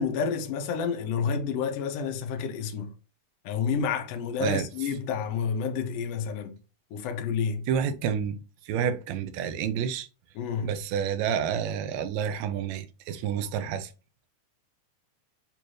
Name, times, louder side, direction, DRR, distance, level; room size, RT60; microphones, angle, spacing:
voice 1, 0.0-2.9 3.4-6.6 6.9-7.6 10.3-10.7, left 6 dB, 75° left, 1.5 m, -29 dB
voice 2, 7.7-8.4 8.6-10.1 10.6-13.9, right 8 dB, 75° right, 1.7 m, -29 dB
6.8 x 2.5 x 3.1 m
omnidirectional pair, 3.6 m